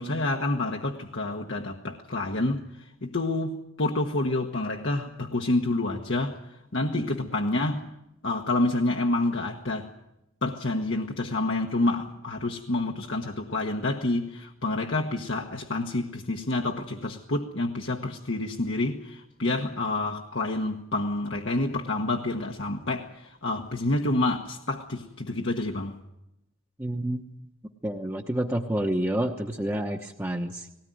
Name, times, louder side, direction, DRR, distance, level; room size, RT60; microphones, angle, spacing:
voice 1, 0.0-7.9 8.2-9.9 10.4-26.0, left 2 dB, 65° left, 1 dB, 1.3 m, -28 dB
voice 2, 26.8-27.2 27.8-30.7, right 1 dB, 10° right, 0 dB, 1.0 m, -29 dB
19.5 x 17.5 x 9.4 m, 0.90 s
head